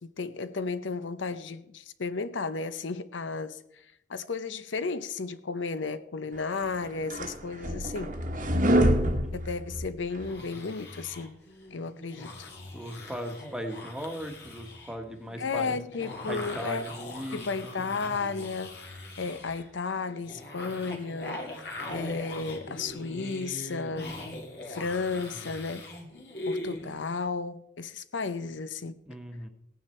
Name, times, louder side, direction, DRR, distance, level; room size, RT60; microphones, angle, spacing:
voice 1, 0.0-3.8 4.1-8.2 9.3-11.4 11.7-12.5 15.4-16.9 17.3-18.7 19.2-24.2 24.7-25.8 26.5-29.0, left 4 dB, 80° left, 0.8 m, -33 dB
sound 1, 6.6-10.3, equal, 45° right, 1.1 m, -26 dB
sound 2, 10.2-27.2, left 2 dB, 60° left, 2.4 m, -41 dB
voice 2, 12.7-15.8 16.2-17.5 17.8-17.9 29.1-29.5, equal, 5° right, 1.3 m, -38 dB
17.0 x 9.3 x 4.4 m
head